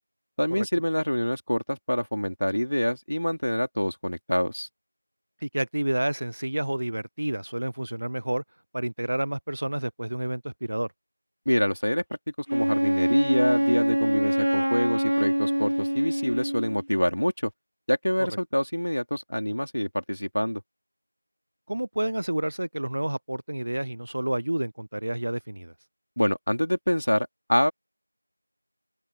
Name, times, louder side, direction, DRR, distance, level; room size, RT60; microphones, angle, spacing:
voice 1, 0.4-4.7 11.5-12.0 12.5-17.5 17.9-20.6 26.2-27.7, equal, 65° left, 3.7 m, -26 dB
voice 2, 5.4-8.4 8.7-10.9 18.3-18.4 21.7-25.7, right 1 dB, 20° right, 0.5 m, -29 dB
Wind instrument woodwind instrument, 12.5-16.8, equal, 65° right, 0.8 m, -24 dB
open air
figure-of-eight pair, 180°, 0 cm